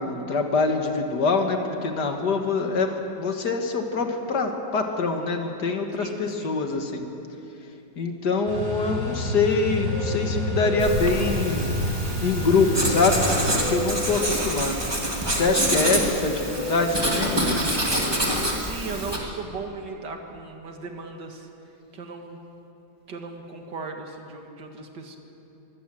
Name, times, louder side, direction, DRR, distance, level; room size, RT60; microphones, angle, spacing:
voice 1, 0.0-7.1 8.0-11.7 12.2-14.8 15.3-17.6, left 3 dB, 65° left, 4 dB, 2.2 m, -24 dB
voice 2, 6.0-6.6 18.2-21.5 21.9-22.4 23.1-25.2, right 4 dB, 75° right, 3 dB, 2.5 m, -37 dB
sound 1, 8.5-13.6, equal, 35° right, 5.6 m, -29 dB
Guitar, 9.4-11.9 12.7-18.1, equal, 5° left, 1.4 m, -36 dB
Writing, 10.8-19.2, equal, 15° right, 2.4 m, -26 dB
23.0 x 16.5 x 7.8 m, 2.9 s
omnidirectional pair, 1.9 m